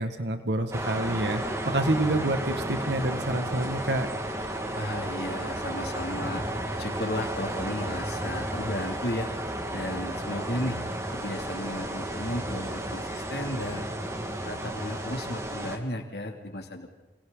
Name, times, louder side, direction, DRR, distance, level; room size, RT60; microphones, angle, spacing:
voice 1, 0.0-4.1, right 1 dB, 75° right, 6 dB, 2.1 m, -27 dB
sound 1, 0.7-15.8, right 1 dB, 15° right, 2.2 m, -33 dB
voice 2, 4.7-6.4 6.8-9.3 9.7-10.8 11.1-13.9 14.4-16.9, left 1 dB, 65° left, 3 dB, 3.0 m, -34 dB
29.0 x 28.0 x 4.1 m, 1.1 s
head